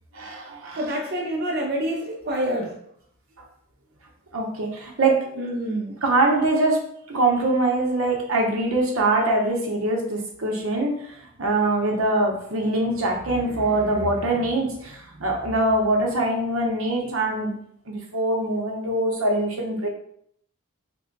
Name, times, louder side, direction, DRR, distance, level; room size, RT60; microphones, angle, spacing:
voice 1, 0.1-0.8 4.3-5.2 6.0-6.8 7.1-17.5 17.9-19.9, right 2 dB, 80° right, 1 dB, 0.8 m, -23 dB
voice 2, 0.8-2.8 5.3-6.0, right 1 dB, 50° right, -1 dB, 0.5 m, -27 dB
3.3 x 2.2 x 3.8 m, 0.67 s
head